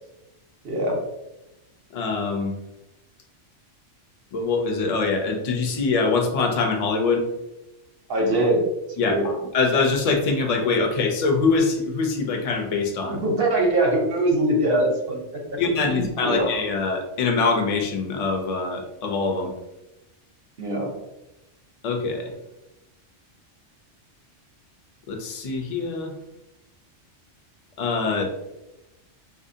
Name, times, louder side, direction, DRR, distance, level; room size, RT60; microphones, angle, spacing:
voice 1, 0.6-1.0 8.1-8.7 9.1-9.4 13.1-15.4 15.9-16.5 20.6-20.9, right 1 dB, 55° right, 0 dB, 0.9 m, -22 dB
voice 2, 1.9-2.5 4.3-7.2 9.0-13.2 15.6-19.5 21.8-22.3 25.1-26.1 27.8-28.3, left 4 dB, 45° left, 3 dB, 0.5 m, -24 dB
4.0 x 2.6 x 2.6 m, 0.93 s
omnidirectional pair, 1.2 m